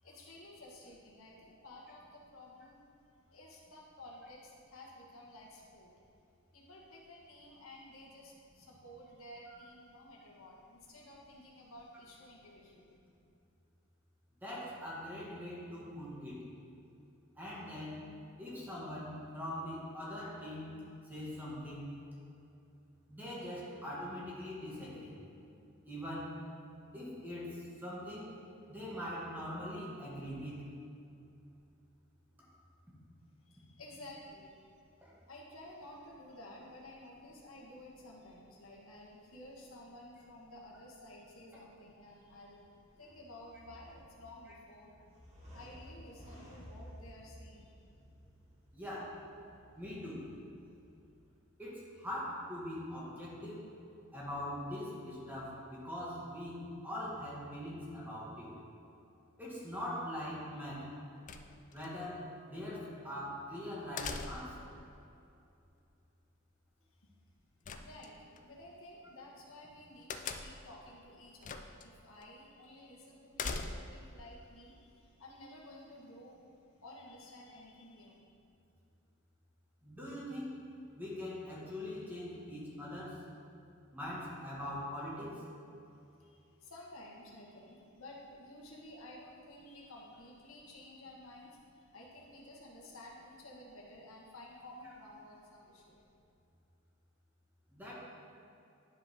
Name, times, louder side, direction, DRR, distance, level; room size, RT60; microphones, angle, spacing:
voice 1, 0.0-2.9 3.3-6.1 6.5-13.0 33.4-34.7 35.3-42.7 43.0-44.9 45.5-47.7 67.0-67.1 67.8-76.4 76.8-78.2 86.2-96.0, left 1 dB, 90° left, -2 dB, 1.6 m, -53 dB
voice 2, 14.4-16.4 17.4-18.0 18.4-20.8 21.1-21.9 23.1-25.2 25.9-26.4 26.9-28.4 28.7-30.7 35.0-35.2 44.5-44.6 48.7-49.2 49.8-50.3 51.6-53.7 54.1-58.6 59.4-60.9 61.7-64.7 79.8-80.5 81.0-83.2 83.9-85.5 97.7-97.9, left 1 dB, 10° right, -7 dB, 1.9 m, -42 dB
sound 1, 42.9-51.4, equal, 35° right, 1.8 m, -56 dB
sound 2, 61.3-61.9 64.0-64.7 67.6-68.4 70.1-70.7 71.4-71.9 72.2-72.3 73.3-74.1, left 4 dB, 40° left, 0.4 m, -40 dB
11.5 x 5.0 x 3.6 m, 2.7 s
head